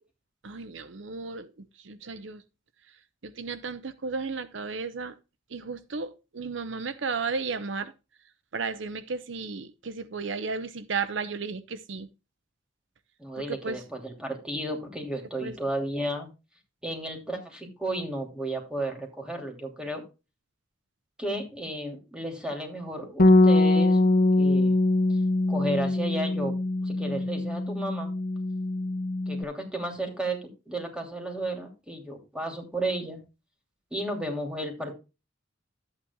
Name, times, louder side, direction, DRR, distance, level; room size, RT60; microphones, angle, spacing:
voice 1, 0.4-2.4 3.2-5.2 5.5-7.9 8.5-12.1 13.4-13.8 15.4-15.6, right 4 dB, 75° right, 0.8 m, -34 dB
voice 2, 13.2-16.3 16.8-20.0 21.2-24.0 24.4-24.8 25.5-26.5 26.8-28.1 29.3-30.4 30.7-33.2 33.9-34.9, right 1 dB, 5° right, 2.7 m, -33 dB
Bass guitar, 23.2-29.4, left 2 dB, 50° left, 0.9 m, -23 dB
12.5 x 8.9 x 2.3 m
head